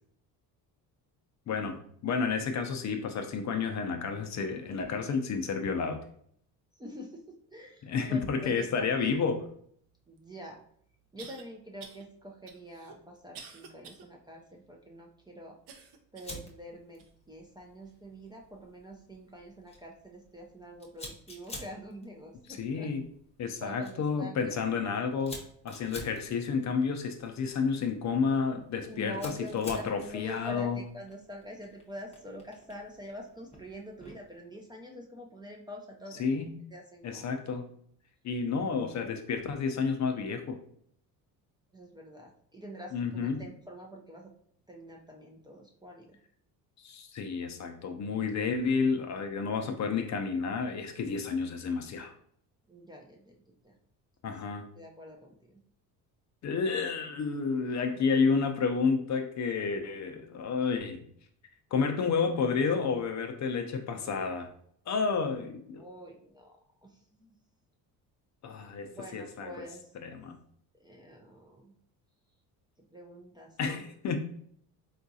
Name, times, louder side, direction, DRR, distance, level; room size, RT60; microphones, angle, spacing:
voice 1, 1.5-6.0 7.8-9.4 22.6-23.0 23.4-30.8 36.2-36.6 37.0-37.7 38.2-40.6 42.9-43.4 46.8-52.1 54.2-54.7 56.4-61.0 61.7-64.5 64.9-65.8 68.4-69.5 70.0-70.4 73.6-74.2, left 5 dB, 45° left, 6 dB, 0.5 m, -30 dB
voice 2, 6.7-7.2 7.5-9.2 10.1-10.6 11.1-15.6 16.1-22.9 23.6-24.5 28.8-36.2 36.7-37.3 38.6-38.7 41.7-44.3 44.7-46.2 52.7-53.8 54.8-55.6 65.8-67.3 68.9-69.9 70.8-71.7 72.9-73.8, equal, 10° right, 0 dB, 0.4 m, -46 dB
sound 1, 10.2-10.3 11.2-11.4 11.8-12.0 12.5-14.1 14.5-14.6 15.7-16.4 17.0-17.1 17.9-18.0, right 5 dB, 80° right, 0.6 m, -49 dB
Fire, 16.2-34.4, left 1 dB, 15° left, 0.8 m, -51 dB
3.7 x 2.4 x 2.6 m, 0.64 s
supercardioid pair, 85°, 42 cm